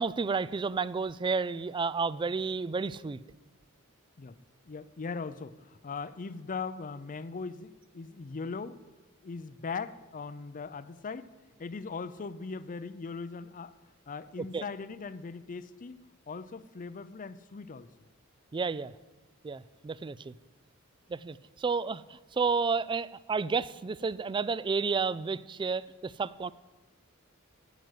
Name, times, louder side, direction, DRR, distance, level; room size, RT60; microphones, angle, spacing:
voice 1, 0.0-3.2 14.5-14.6 18.5-18.9 19.4-20.3 21.1-26.5, right 4 dB, 20° right, 19 dB, 0.3 m, -31 dB
voice 2, 4.6-8.8 9.2-11.3 11.6-13.7 14.1-16.0 16.3-17.9, left 4 dB, 40° left, 15 dB, 0.5 m, -39 dB
9.6 x 7.8 x 9.3 m, 1.2 s
head